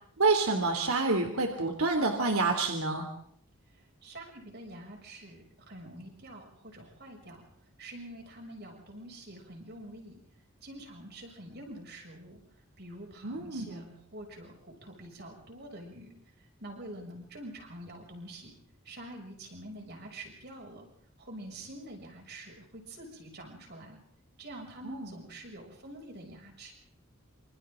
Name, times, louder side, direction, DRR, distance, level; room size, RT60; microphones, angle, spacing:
voice 1, 0.2-3.0 13.2-13.9 24.8-25.1, right 3 dB, 85° right, 4 dB, 3.1 m, -28 dB
voice 2, 4.0-7.4 7.8-10.2 10.6-12.4 12.8-16.1 16.6-18.6 18.9-20.9 21.2-24.0 24.4-26.7, right 1 dB, 50° right, 1 dB, 7.0 m, -46 dB
27.5 x 27.0 x 3.9 m, 0.68 s
head